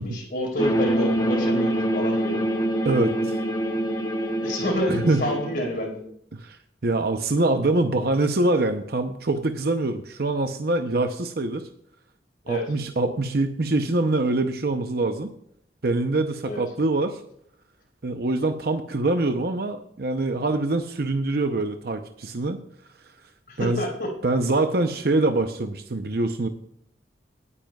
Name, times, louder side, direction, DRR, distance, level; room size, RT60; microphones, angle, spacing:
voice 1, 0.0-2.4 4.4-6.0 12.4-12.6 16.4-16.6 23.5-24.1, equal, 55° left, -1 dB, 4.8 m, -28 dB
sound 1, 0.6-5.7, equal, 20° left, 1.0 m, -25 dB
voice 2, 2.8-3.4 4.9-5.3 6.3-6.6 6.8-11.7 12.5-15.3 15.8-17.2 18.0-22.6 23.6-23.8 24.2-26.5, right 2 dB, 60° right, 6 dB, 0.7 m, -24 dB
18.0 x 9.9 x 2.4 m, 0.70 s
head